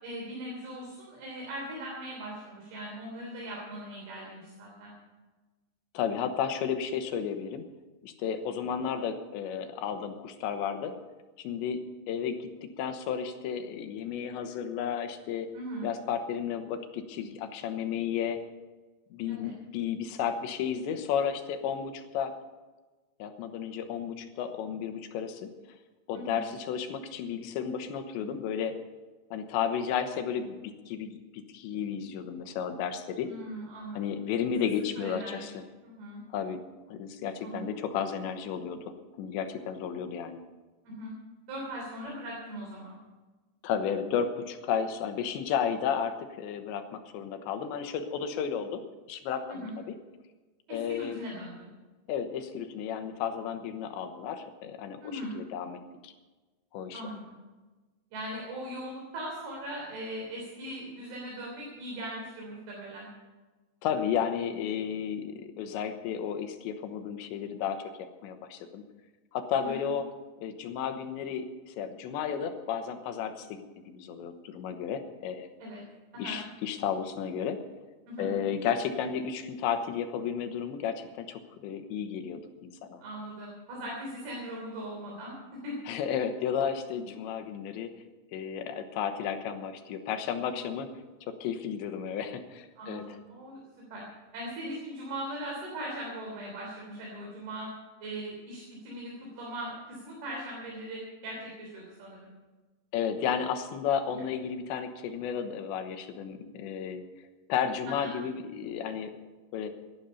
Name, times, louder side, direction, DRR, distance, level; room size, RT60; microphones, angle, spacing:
voice 1, 0.0-4.9 15.5-15.9 19.3-19.5 26.1-26.4 33.3-34.2 35.0-35.5 35.8-36.2 37.4-37.7 40.9-41.1 41.5-43.0 49.5-49.7 50.7-51.7 55.0-55.3 56.9-57.4 58.1-63.1 69.5-69.8 75.6-75.8 76.1-76.4 78.1-78.3 83.0-85.3 85.6-85.8 92.8-93.6 93.9-94.1 94.3-97.7 98.0-102.3 108.0-108.1, right 1 dB, 60° right, -3 dB, 5.2 m, -39 dB
voice 2, 5.9-7.6 8.0-10.9 11.4-12.5 12.8-15.5 15.8-18.4 19.1-22.3 23.2-25.5 26.1-28.8 29.3-33.3 33.9-35.5 36.3-36.6 36.9-38.8 39.2-40.4 43.6-48.8 49.1-50.0 50.7-51.2 52.1-55.8 56.0-56.1 56.7-57.0 63.8-67.8 68.2-68.8 69.3-70.1 70.4-75.5 76.2-77.6 78.2-83.0 85.9-87.9 88.3-90.9 91.3-93.2 102.9-107.1 107.5-109.2 109.5-109.7, left 8 dB, 90° left, 7 dB, 3.4 m, -33 dB
17.0 x 12.0 x 5.5 m, 1.2 s
omnidirectional pair, 5.1 m